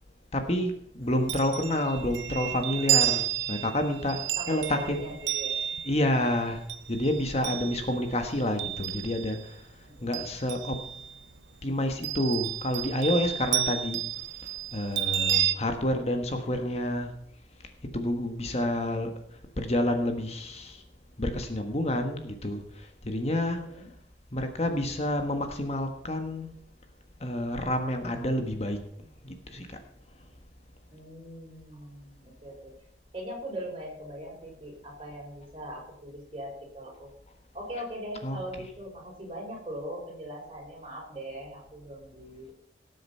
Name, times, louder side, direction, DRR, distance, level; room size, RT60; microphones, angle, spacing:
voice 1, 0.3-5.0 5.8-6.6 6.9-9.6 10.0-10.8 11.6-14.0 14.7-17.1 17.9-19.1 19.6-20.8 21.2-22.6 23.0-23.7 24.3-26.5 27.2-28.8 29.2-29.7 38.2-38.4, left 1 dB, 35° left, 5 dB, 1.3 m, -29 dB
Chime, 1.0-9.5 9.9-11.2 12.0-15.6, right 11 dB, 85° right, 0.7 m, -31 dB
voice 2, 4.4-5.5 9.9-10.3 23.6-23.9 30.9-32.7 33.1-37.1 37.5-42.5, equal, 30° right, -2 dB, 5.5 m, -40 dB
18.5 x 7.8 x 5.6 m, 0.72 s
head